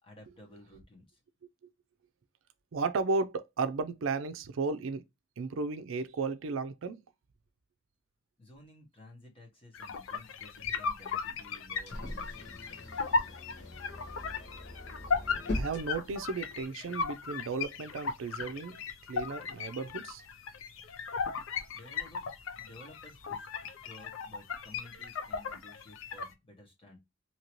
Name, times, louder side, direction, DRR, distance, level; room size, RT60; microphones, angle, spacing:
voice 1, 0.0-1.2 8.4-13.4 21.7-22.3 22.6-23.5 23.8-27.0, left 1 dB, 25° left, 1.1 m, -55 dB
voice 2, 2.7-5.0 5.4-7.0 15.5-18.8 19.1-20.2, right 4 dB, 80° right, 0.4 m, -34 dB
sound 1, 9.7-26.3, left 5 dB, 80° left, 0.5 m, -37 dB
sound 2, 10.4-16.6, left 1 dB, 55° left, 1.0 m, -42 dB
2.8 x 2.7 x 2.9 m
head